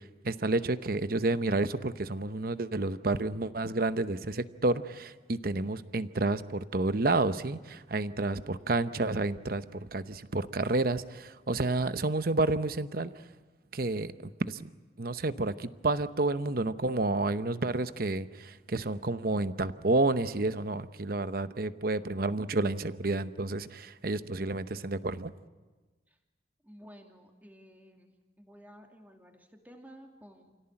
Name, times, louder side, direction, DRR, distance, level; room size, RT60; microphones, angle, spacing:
voice 1, 0.2-13.1 13.7-14.1 14.5-14.6 15.0-25.3, right 2 dB, 55° right, 12 dB, 0.9 m, -30 dB
voice 2, 26.6-28.1 28.4-30.6, equal, 10° right, 3 dB, 2.6 m, -53 dB
28.0 x 17.5 x 8.9 m, 1.3 s
head